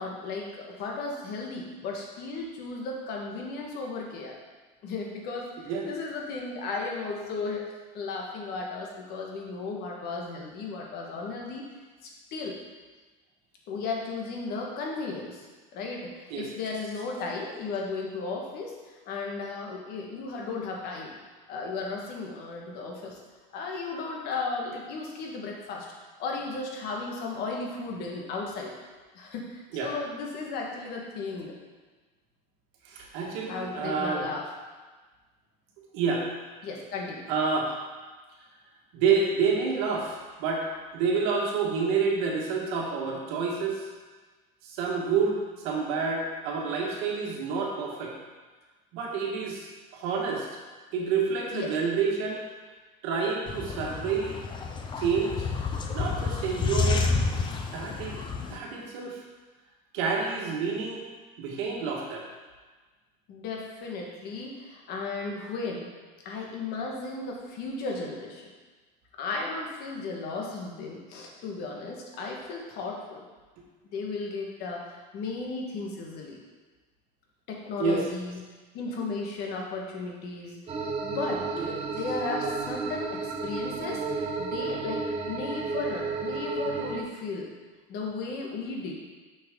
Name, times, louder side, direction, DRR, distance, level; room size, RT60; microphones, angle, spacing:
voice 1, 0.0-4.4 4.8-7.6 7.9-11.6 12.0-12.5 13.7-15.4 15.7-21.2 21.5-23.2 23.5-25.9 26.2-28.7 29.1-31.5 33.5-34.5 36.6-37.3 51.5-51.7 63.3-65.9 66.2-68.5 69.2-73.2 73.8-76.4 77.5-78.4 78.7-81.4 81.8-87.5 87.9-88.9, left 3 dB, 55° left, 0 dB, 1.5 m, -35 dB
voice 2, 32.8-34.3 35.9-36.3 37.3-37.8 38.9-40.7 40.9-43.8 44.6-48.1 48.9-50.5 50.9-52.4 53.0-54.4 55.0-55.5 55.9-57.1 57.7-58.2 58.5-59.2 59.9-61.1 61.4-62.3 73.6-73.7 77.8-78.0 81.5-81.7, right 5 dB, 75° right, -1 dB, 1.6 m, -28 dB
sound 1, 53.5-58.6, left 4 dB, 25° left, 0.5 m, -29 dB
sound 2, 80.7-87.0, right 3 dB, 30° right, 0.8 m, -32 dB
6.3 x 6.3 x 3.8 m, 1.3 s
cardioid pair, 145°, 20 cm